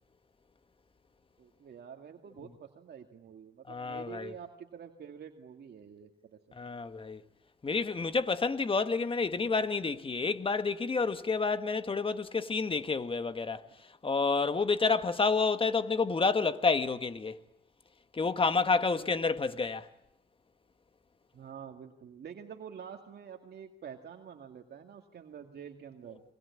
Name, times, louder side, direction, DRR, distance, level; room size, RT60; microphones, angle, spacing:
voice 1, 1.4-6.6 9.3-9.5 21.3-26.2, right 7 dB, 55° right, 2.2 m, -47 dB
voice 2, 3.7-4.3 6.5-7.2 7.6-13.6 14.0-17.4 18.1-19.9, left 4 dB, 25° left, 1.6 m, -29 dB
29.5 x 23.0 x 8.5 m
cardioid pair, 90°, 20 cm